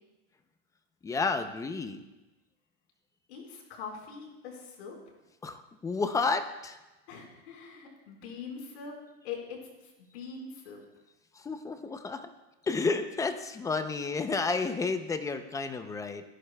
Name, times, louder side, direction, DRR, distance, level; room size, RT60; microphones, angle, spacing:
voice 1, 1.0-2.0 5.4-6.8 11.3-12.3 12.6-16.2, left 4 dB, 10° left, 9 dB, 0.5 m, -31 dB
voice 2, 3.3-5.0 7.1-8.9 9.2-9.6 10.0-10.8, left 6 dB, 75° left, 1 dB, 4.5 m, -42 dB
25.0 x 11.5 x 2.2 m, 1.1 s
supercardioid pair, 145°, 33 cm